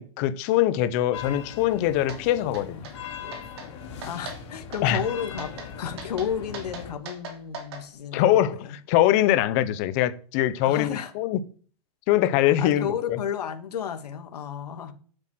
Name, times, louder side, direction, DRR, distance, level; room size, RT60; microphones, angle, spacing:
voice 1, 0.0-2.9 4.8-5.0 8.1-8.6 8.9-11.4 12.1-12.9, left 13 dB, 20° left, 0.6 m, -22 dB
sound 1, 1.1-6.9, left 7 dB, 45° left, 3.4 m, -40 dB
sound 2, 2.1-2.2 2.5-3.0 3.3-3.7 4.0-4.4 4.7-5.1 5.4-5.7 6.0-7.8, right 4 dB, 40° right, 3.4 m, -39 dB
voice 2, 4.0-8.8 10.6-11.1 12.4-14.9, left 8 dB, 80° left, 2.4 m, -32 dB
8.5 x 7.8 x 7.5 m
supercardioid pair, 180°, 20 cm